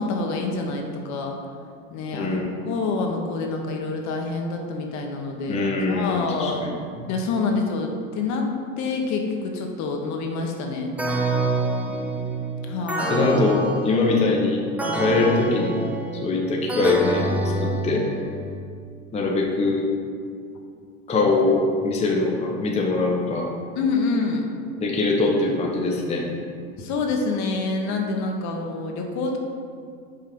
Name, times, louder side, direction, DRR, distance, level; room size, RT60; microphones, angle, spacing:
voice 1, 0.0-1.3 1.9-2.4 2.7-6.6 7.1-8.4 8.8-10.9 12.7-13.2 23.8-24.4 26.8-29.4, left 3 dB, 45° left, 2 dB, 1.0 m, -27 dB
voice 2, 2.1-2.6 5.5-7.1 11.9-12.2 13.1-14.6 14.9-15.8 16.2-18.0 19.1-19.9 21.1-23.5 24.8-26.3, left 3 dB, 15° left, -2 dB, 0.9 m, -23 dB
sound 1, 11.0-18.6, right 2 dB, 5° right, 0.4 m, -27 dB
5.8 x 4.6 x 5.1 m, 2.2 s
supercardioid pair, 115°, 40 cm